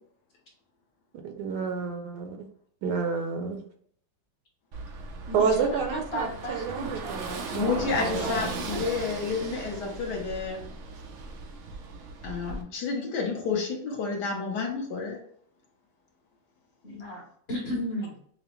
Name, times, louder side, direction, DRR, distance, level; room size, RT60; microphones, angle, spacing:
voice 1, 1.2-2.5 2.8-3.6 5.3-8.5, right 5 dB, 70° right, 5 dB, 1.1 m, -30 dB
Car passing by / Engine, 4.7-12.6, right 4 dB, 90° right, 0.6 m, -38 dB
voice 2, 5.3-8.7 16.8-17.2 17.5-18.1, equal, 40° left, -2 dB, 1.1 m, -35 dB
voice 3, 7.5-10.6 12.2-15.2, left 4 dB, 65° left, 0 dB, 1.4 m, -30 dB
5.7 x 2.0 x 2.9 m, 0.62 s
omnidirectional pair, 2.0 m